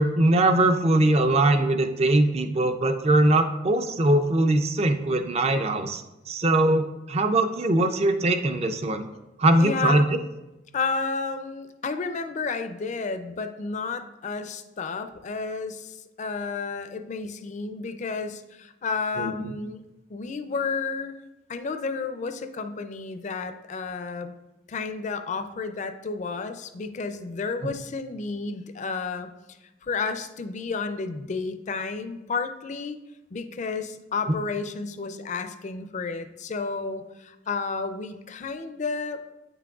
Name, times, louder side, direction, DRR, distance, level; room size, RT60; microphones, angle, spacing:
voice 1, 0.0-9.1 9.4-10.0 19.2-19.5 27.6-27.7 34.3-34.4, right 2 dB, 35° right, 8 dB, 0.4 m, -21 dB
voice 2, 9.6-10.1 10.7-19.8 20.1-21.1 21.5-24.3 24.7-29.3 29.8-33.0 33.3-39.2, left 4 dB, 40° left, 9 dB, 0.4 m, -31 dB
8.3 x 6.0 x 2.3 m, 1.0 s
head